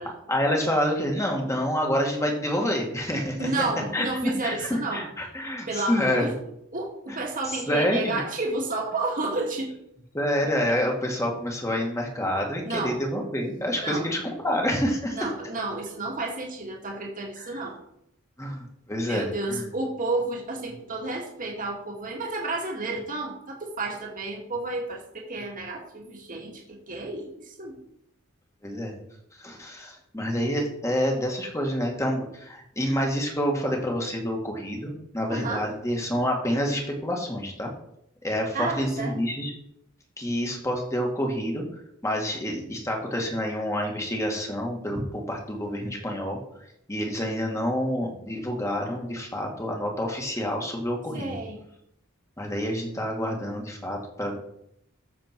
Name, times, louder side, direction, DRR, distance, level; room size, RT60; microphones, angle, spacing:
voice 1, 0.3-3.5 3.9-6.3 7.1-7.2 7.4-8.2 10.1-15.3 17.4-17.6 18.4-19.6 28.6-29.0 29.4-37.7 38.2-39.5 40.2-41.6 42.0-46.4 46.9-51.4 52.4-54.4, equal, 15° left, 1 dB, 2.1 m, -28 dB
voice 2, 3.4-5.0 5.7-6.3 6.7-9.7 12.6-13.0 13.8-14.1 15.1-17.8 19.0-27.8 35.3-35.6 38.5-39.2 51.1-51.6, right 2 dB, 40° right, -1 dB, 2.1 m, -31 dB
14.0 x 6.9 x 4.6 m, 0.77 s
head